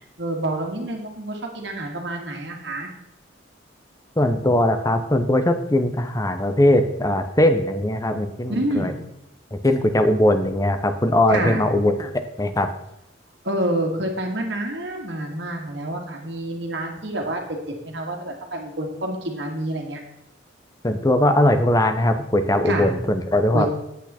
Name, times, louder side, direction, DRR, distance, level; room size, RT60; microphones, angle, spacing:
voice 1, 0.2-2.9 4.4-4.5 8.5-8.9 11.3-11.6 13.4-20.0 22.6-22.9 23.5-23.7, right 1 dB, 60° right, 2 dB, 1.9 m, -28 dB
voice 2, 4.2-8.9 9.5-12.1 12.4-12.7 20.8-23.7, left 1 dB, 20° left, 8 dB, 0.7 m, -20 dB
8.5 x 8.3 x 4.2 m, 0.85 s
head